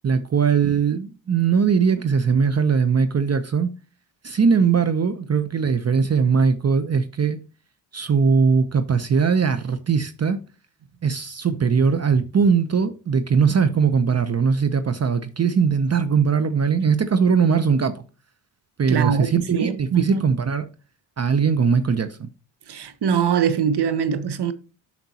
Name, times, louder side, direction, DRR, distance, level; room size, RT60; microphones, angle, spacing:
voice 1, 0.0-3.7 4.2-7.4 7.9-10.4 11.0-18.0 18.8-20.6 21.2-22.3, right 6 dB, 35° right, 0.8 m, -20 dB
voice 2, 18.9-20.3 22.7-24.5, right 7 dB, 60° right, 1.1 m, -23 dB
8.9 x 6.0 x 2.9 m
supercardioid pair, 50°, 46 cm